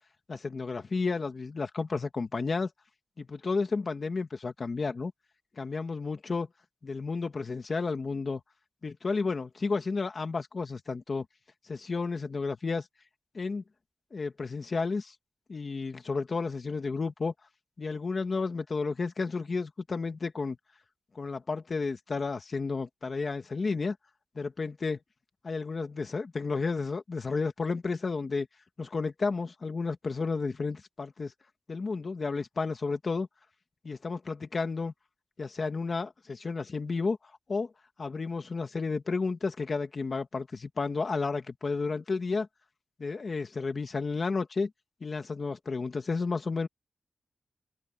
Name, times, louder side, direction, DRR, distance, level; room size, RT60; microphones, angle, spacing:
voice 1, 0.3-2.7 3.2-5.1 5.6-6.5 6.8-8.4 8.8-11.3 11.7-12.9 13.3-13.6 14.1-15.1 15.5-17.3 17.8-20.6 21.2-24.0 24.4-25.0 25.4-28.5 28.8-31.3 31.7-33.3 33.8-34.9 35.4-37.2 37.5-37.7 38.0-42.5 43.0-44.7 45.0-46.7, left 4 dB, 40° left, 1.8 m, -32 dB
wide cardioid pair, 150°, 0 cm